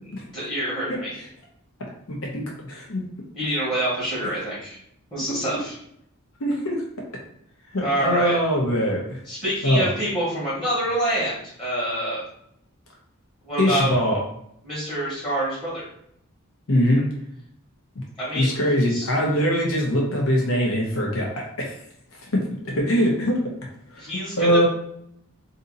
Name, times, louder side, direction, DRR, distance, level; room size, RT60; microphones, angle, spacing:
voice 1, 0.3-1.2 3.3-4.8 5.1-5.8 7.8-8.4 9.3-12.2 13.4-13.9 14.6-15.9 18.2-19.1 24.0-24.7, right 1 dB, 25° left, -8 dB, 1.2 m, -27 dB
voice 2, 2.1-3.0 5.3-5.4 6.4-6.8 7.7-9.2 9.6-9.9 13.6-14.2 16.7-17.1 18.3-21.7 22.2-23.5 23.9-24.0 24.4-24.7, equal, 70° left, -1 dB, 0.8 m, -22 dB
2.7 x 2.6 x 3.8 m, 0.72 s
head